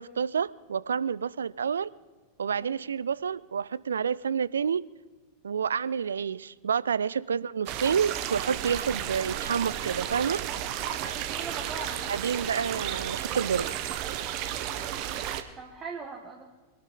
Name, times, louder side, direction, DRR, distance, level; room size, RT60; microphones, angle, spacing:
voice 1, 0.0-1.9 2.4-4.8 5.4-10.4 12.1-13.7, right 7 dB, 70° right, 20 dB, 0.4 m, -29 dB
sound 1, 7.7-15.4, right 11 dB, 40° right, 1.0 m, -33 dB
voice 2, 11.0-12.2 15.0-16.4, right 4 dB, 25° right, 0 dB, 1.7 m, -41 dB
22.5 x 12.0 x 3.8 m, 1.3 s
figure-of-eight pair, 90°, 0 cm